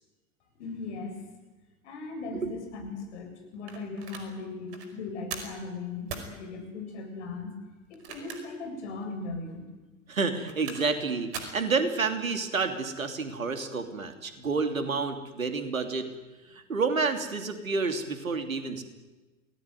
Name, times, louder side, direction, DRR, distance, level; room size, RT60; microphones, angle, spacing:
voice 1, 0.6-1.2 1.8-7.5 7.9-9.6, left 3 dB, 55° left, 4 dB, 7.9 m, -38 dB
sound 1, 3.7-4.3 4.7-4.9 5.3-5.6 6.1-6.3 7.8-8.6 9.0-9.1 10.2-11.0 11.3-11.6, right 6 dB, 50° right, 5.1 m, -40 dB
voice 2, 10.1-16.1 16.7-18.8, right 4 dB, 75° right, 8 dB, 3.2 m, -29 dB
28.0 x 19.0 x 9.6 m, 1.1 s
figure-of-eight pair, 90°, 41 cm